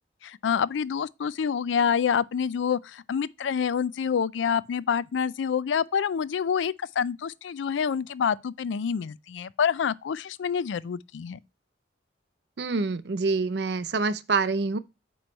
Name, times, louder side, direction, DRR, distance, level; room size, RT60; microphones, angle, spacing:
voice 1, 0.2-11.4, left 7 dB, 85° left, 0.4 m, -27 dB
voice 2, 12.6-14.8, right 4 dB, 65° right, 0.5 m, -26 dB
8.8 x 3.1 x 5.2 m
head